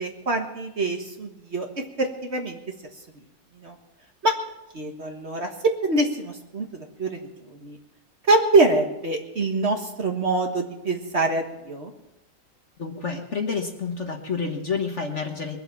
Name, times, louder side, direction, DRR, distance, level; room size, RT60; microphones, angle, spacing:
voice 1, 0.0-1.6 2.0-2.6 3.6-3.7 4.2-4.3 4.7-5.5 5.8-7.2 7.6-7.8 8.3-11.9, right 2 dB, 40° right, 3 dB, 1.6 m, -24 dB
voice 2, 12.8-15.6, left 5 dB, 45° left, 4 dB, 1.3 m, -29 dB
22.0 x 7.9 x 7.2 m, 0.90 s
omnidirectional pair, 2.1 m